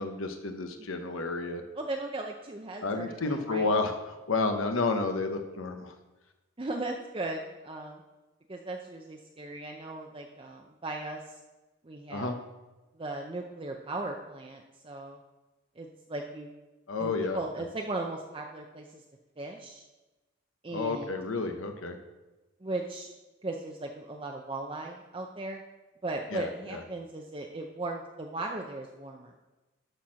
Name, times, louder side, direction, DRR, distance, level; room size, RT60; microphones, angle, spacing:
voice 1, 0.0-1.6 2.8-5.9 12.1-12.3 16.9-17.4 20.7-22.0 26.3-26.8, left 3 dB, 75° left, 6 dB, 0.8 m, -31 dB
voice 2, 1.7-3.7 6.6-8.0 8.5-11.4 11.8-12.3 12.9-15.2 15.8-16.5 17.0-19.0 19.4-19.9 20.6-21.2 22.6-23.1 23.4-25.6 26.0-29.3, right 2 dB, 25° right, 2 dB, 0.6 m, -37 dB
11.5 x 4.4 x 6.3 m, 1.1 s
head